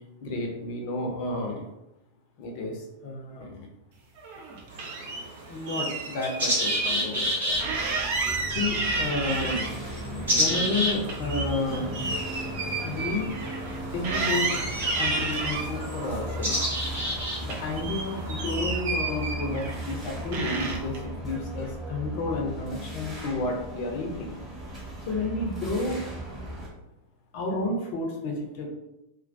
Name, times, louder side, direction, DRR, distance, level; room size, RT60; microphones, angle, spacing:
voice 1, 0.2-1.6 2.4-3.7 5.5-7.6 8.5-9.7 10.4-11.9 12.8-13.4 13.9-14.5 15.0-16.6 17.4-24.4 25.1-26.1 27.3-28.7, left 2 dB, 45° left, 1 dB, 0.6 m, -31 dB
sound 1, 4.2-5.2 5.7-6.9 7.2-7.3 7.6-10.0 10.4-13.8 14.0-15.7 16.3-17.2 17.4-19.9 20.3-21.0, right 3 dB, 50° right, 0.4 m, -31 dB
sound 2, 4.7-18.6, equal, 70° right, 0.9 m, -32 dB
sound 3, 7.5-26.7, equal, 5° right, 0.8 m, -37 dB
2.2 x 2.2 x 2.5 m, 0.90 s
figure-of-eight pair, 90°, 0 cm